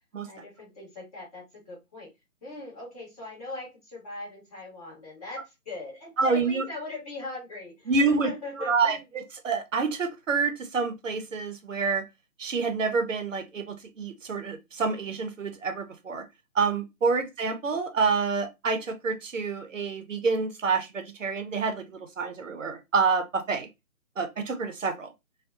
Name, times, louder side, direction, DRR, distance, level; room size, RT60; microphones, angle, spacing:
voice 1, 0.2-2.1 2.4-9.0, left 2 dB, 25° left, 1.3 m, -40 dB
voice 2, 6.2-6.6 7.9-8.3 8.6-12.0 12.4-16.2 16.5-23.7 24.2-25.1, right 4 dB, 60° right, 0.6 m, -27 dB
2.6 x 2.2 x 2.3 m
figure-of-eight pair, 150°, 44 cm